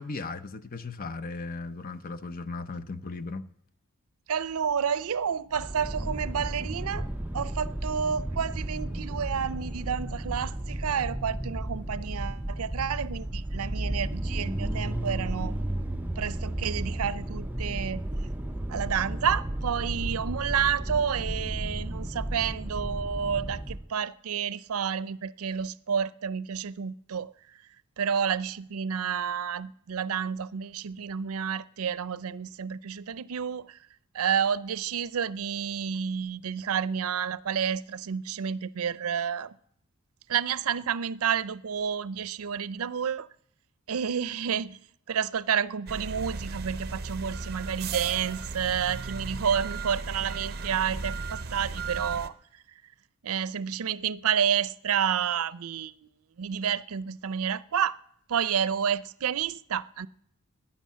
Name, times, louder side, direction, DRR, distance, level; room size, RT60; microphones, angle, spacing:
voice 1, 0.0-3.5, left 3 dB, 40° left, 0.6 m, -37 dB
voice 2, 4.3-7.1 7.3-15.5 16.2-18.0 18.7-27.3 28.0-33.8 34.1-39.5 40.3-43.3 43.9-44.8 45.1-52.4 53.2-55.9 56.4-58.0 58.3-60.1, right 7 dB, 85° right, 0.5 m, -30 dB
sound 1, 5.5-23.9, right 1 dB, 10° right, 0.5 m, -33 dB
sound 2, 45.9-52.3, right 4 dB, 45° right, 0.7 m, -36 dB
15.0 x 10.0 x 7.4 m
head